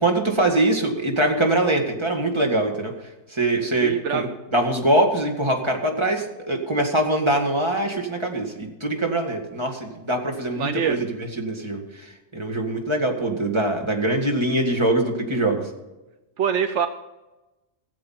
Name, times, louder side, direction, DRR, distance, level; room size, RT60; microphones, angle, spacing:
voice 1, 0.0-2.9 3.3-4.3 4.5-15.7, right 1 dB, 20° right, 1 dB, 2.1 m, -23 dB
voice 2, 3.8-4.2 10.6-11.0 16.4-16.9, right 7 dB, 70° right, 8 dB, 1.0 m, -24 dB
16.5 x 7.7 x 5.8 m, 1.0 s
omnidirectional pair, 1.3 m